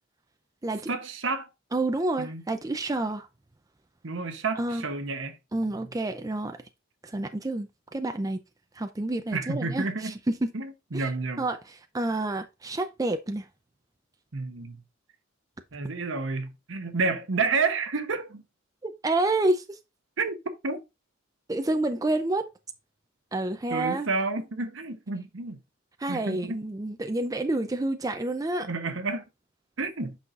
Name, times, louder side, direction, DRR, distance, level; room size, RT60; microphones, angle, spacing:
voice 1, 0.9-1.5 2.2-2.4 4.0-5.4 9.3-10.1 10.5-11.4 14.3-14.8 15.7-18.4 20.2-20.4 20.6-20.8 23.7-25.6 26.1-26.6 28.6-29.2 29.8-30.2, right 4 dB, 65° right, 1.0 m, -30 dB
voice 2, 1.7-3.3 4.6-4.8 5.5-6.6 7.0-8.4 8.8-10.5 10.9-11.1 11.4-13.5 18.8-19.8 21.5-22.5 23.3-24.1 26.0-28.7, right 2 dB, 15° right, 0.5 m, -29 dB
8.3 x 5.6 x 2.5 m
head